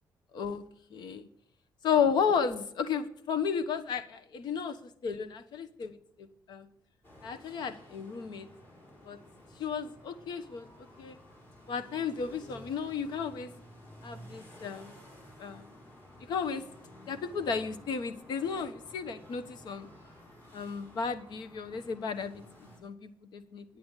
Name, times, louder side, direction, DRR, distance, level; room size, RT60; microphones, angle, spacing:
voice 1, 0.9-1.3 1.8-6.7 7.2-8.5 9.0-9.2 9.6-11.2 11.7-13.5 14.0-15.0 15.4-15.7 16.2-16.7 17.1-19.9 20.5-22.4 22.8-23.6, left 6 dB, 70° left, 10 dB, 1.1 m, -33 dB
sound 1, 7.0-22.8, left 1 dB, 30° left, 4.5 m, -53 dB
10.5 x 9.0 x 8.1 m, 0.68 s
cardioid pair, 140°, 8 cm